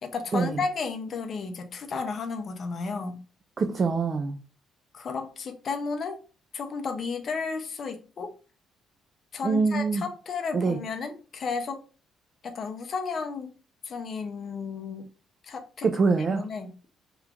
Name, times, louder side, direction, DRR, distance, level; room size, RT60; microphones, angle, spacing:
voice 1, 0.0-3.2 4.9-6.2 6.5-8.3 9.3-11.8 12.4-13.5 13.8-15.1 15.4-15.9 16.3-16.9, left 4 dB, 40° left, 0.5 m, -33 dB
voice 2, 3.6-4.4 9.4-10.0 10.5-10.8 15.8-16.5, right 4 dB, 30° right, 0.3 m, -24 dB
2.9 x 2.4 x 3.4 m
cardioid pair, 155°, 0 cm